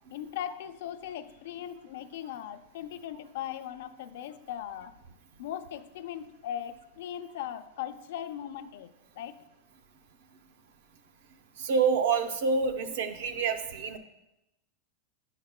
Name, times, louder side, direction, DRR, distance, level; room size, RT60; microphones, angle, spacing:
voice 1, 0.1-4.9 5.4-9.3, left 10 dB, 65° left, 9 dB, 0.4 m, -39 dB
voice 2, 11.6-14.0, right 5 dB, 65° right, 7 dB, 0.6 m, -27 dB
10.5 x 5.8 x 2.2 m, 0.93 s
supercardioid pair, 170°, 0 cm